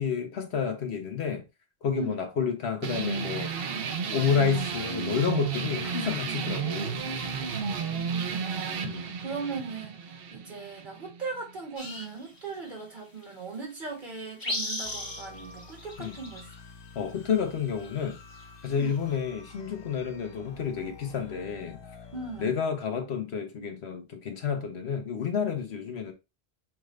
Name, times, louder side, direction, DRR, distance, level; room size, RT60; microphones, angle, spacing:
voice 1, 0.0-1.4 1.8-3.5 4.1-7.0 8.8-9.1 16.0-16.1 16.9-18.2 18.6-21.8 22.4-26.1, left 7 dB, 85° left, 1.2 m, -30 dB
voice 2, 1.9-2.3 7.6-16.5 18.7-19.0 22.1-22.6, right 4 dB, 50° right, 1.6 m, -39 dB
sound 1, 2.8-11.9, right 6 dB, 70° right, 0.9 m, -33 dB
sound 2, 11.8-12.8 13.2-13.3 13.9-14.0 14.2-16.5 17.6-19.1, left 1 dB, 20° left, 1.0 m, -36 dB
sound 3, 14.8-22.5, left 4 dB, 40° left, 0.4 m, -49 dB
6.1 x 2.5 x 3.2 m
omnidirectional pair, 1.1 m